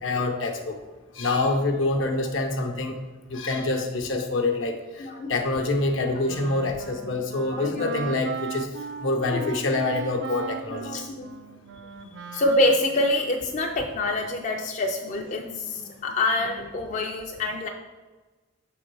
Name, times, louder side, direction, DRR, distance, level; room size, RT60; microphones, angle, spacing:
voice 1, 0.0-0.8 1.2-3.0 3.3-8.7 9.0-11.0, left 2 dB, 70° left, 3 dB, 0.9 m, -26 dB
voice 2, 5.0-5.4 7.5-7.9 9.3-9.5 10.7-11.4 12.3-17.7, left 1 dB, 40° left, 1 dB, 0.4 m, -26 dB
Wind instrument woodwind instrument, 5.8-13.1, right 6 dB, 60° right, 0.4 m, -38 dB
6.8 x 3.6 x 4.7 m, 1.3 s
head